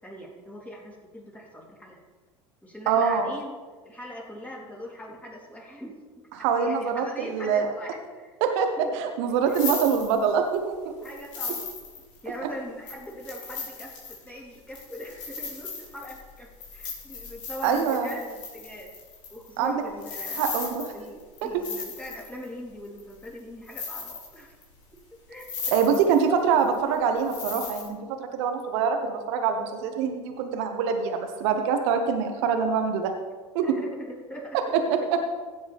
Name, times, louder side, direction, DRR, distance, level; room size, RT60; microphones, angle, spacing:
voice 1, 0.0-2.1 2.6-3.5 3.8-6.0 6.3-8.3 8.8-9.0 9.3-9.7 11.0-11.7 12.2-18.9 19.3-24.5 25.3-26.3 33.6-35.1, equal, 10° left, -4 dB, 3.7 m, -41 dB
voice 2, 2.9-3.3 6.4-7.7 8.4-8.7 8.9-10.9 17.6-18.1 19.6-19.8 20.4-20.8 21.4-21.5 25.7-33.1 34.7-35.2, right 6 dB, 65° right, 5 dB, 1.2 m, -24 dB
sound 1, 9.3-10.5 11.0-12.3 12.9-22.4 23.0-23.4 23.7-24.6 25.0-25.1 25.4-26.3 26.6-27.9, left 5 dB, 80° left, 3.6 m, -37 dB
16.5 x 7.8 x 3.6 m, 1.4 s
hypercardioid pair, 85°, 16 cm